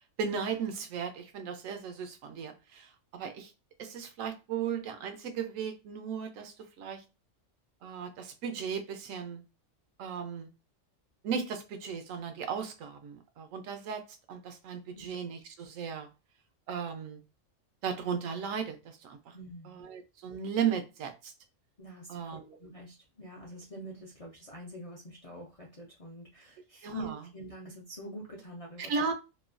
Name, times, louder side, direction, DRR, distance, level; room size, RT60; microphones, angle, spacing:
voice 1, 0.2-2.9 3.1-3.5 3.8-7.0 7.8-9.4 10.0-10.5 11.2-14.0 14.3-16.1 16.7-17.2 17.8-19.2 19.6-21.1 22.1-22.7 26.8-27.2 28.8-29.1, right 6 dB, 90° right, 1.0 m, -36 dB
voice 2, 19.3-19.9 21.8-29.0, right 1 dB, 60° left, 0.3 m, -45 dB
3.0 x 2.2 x 2.4 m
omnidirectional pair, 1.3 m